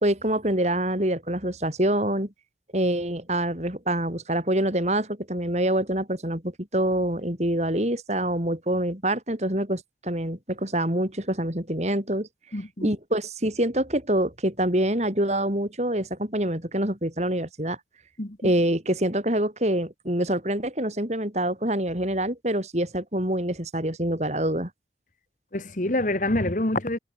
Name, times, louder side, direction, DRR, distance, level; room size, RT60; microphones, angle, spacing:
voice 1, 0.0-2.3 2.7-12.3 12.8-17.8 18.4-24.7, right 1 dB, 40° right, 4.1 m, -26 dB
voice 2, 12.5-12.9 18.2-18.5 25.5-27.0, left 1 dB, 45° left, 1.9 m, -26 dB
head